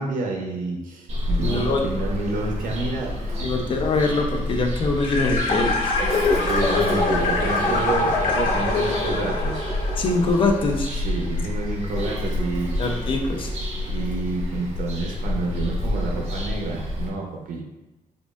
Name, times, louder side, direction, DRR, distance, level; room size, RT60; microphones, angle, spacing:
voice 1, 0.0-3.5 6.4-9.7 10.9-13.0 13.9-17.6, right 3 dB, 75° right, 1 dB, 0.6 m, -29 dB
Bird vocalization bird call bird song, 1.1-17.1, left 1 dB, 50° right, 1.0 m, -28 dB
voice 2, 1.4-1.9 3.4-5.9 10.0-10.9 12.8-13.5, left 3 dB, 40° left, 3 dB, 0.4 m, -23 dB
sound 1, 5.0-10.7, left 3 dB, 90° left, 0.9 m, -24 dB
5.0 x 2.3 x 2.3 m, 1.0 s
wide cardioid pair, 145°, 14 cm